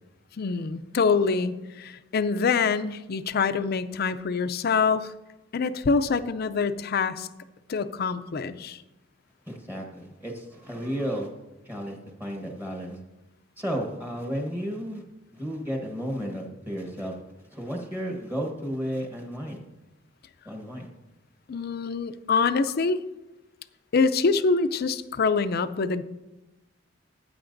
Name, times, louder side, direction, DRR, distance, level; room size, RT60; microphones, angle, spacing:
voice 1, 0.4-5.1 5.5-7.3 7.7-8.8 21.5-23.0 23.9-26.0, left 4 dB, 55° left, 12 dB, 0.5 m, -25 dB
voice 2, 9.5-11.3 11.6-13.0 13.6-15.0 15.3-17.2 17.5-19.6 20.4-20.9, equal, 10° right, 2 dB, 1.2 m, -33 dB
14.5 x 9.0 x 2.6 m, 1.0 s
head